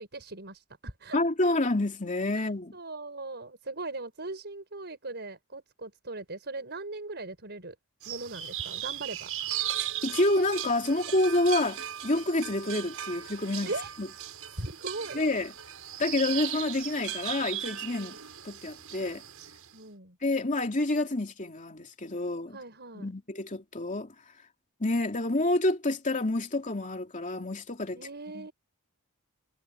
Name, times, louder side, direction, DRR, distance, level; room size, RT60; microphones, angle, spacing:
voice 1, 0.0-1.2 2.3-7.8 8.1-9.3 13.7-13.9 14.5-15.2 19.7-20.2 22.5-23.1 27.9-28.5, right 2 dB, 50° right, 6.1 m, -39 dB
voice 2, 1.1-2.7 10.0-13.7 14.0-14.1 15.1-15.5 16.0-18.2 18.4-19.2 20.2-22.6 23.0-24.1 24.8-28.0 28.3-28.5, left 2 dB, 35° left, 2.8 m, -28 dB
sound 1, 8.0-19.7, right 11 dB, 70° right, 6.8 m, -37 dB
head